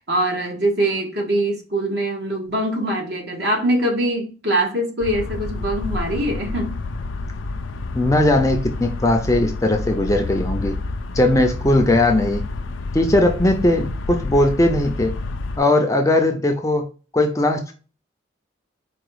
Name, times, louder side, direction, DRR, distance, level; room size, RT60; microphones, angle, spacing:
voice 1, 0.0-6.7, right 1 dB, 60° right, 0 dB, 1.5 m, -23 dB
sound 1, 5.0-15.6, left 3 dB, 90° left, 0.4 m, -29 dB
voice 2, 7.9-10.8 11.1-12.4 12.9-15.1 15.6-16.8 17.1-17.7, left 1 dB, 15° left, 4 dB, 0.5 m, -18 dB
4.7 x 2.3 x 4.8 m, 0.36 s
head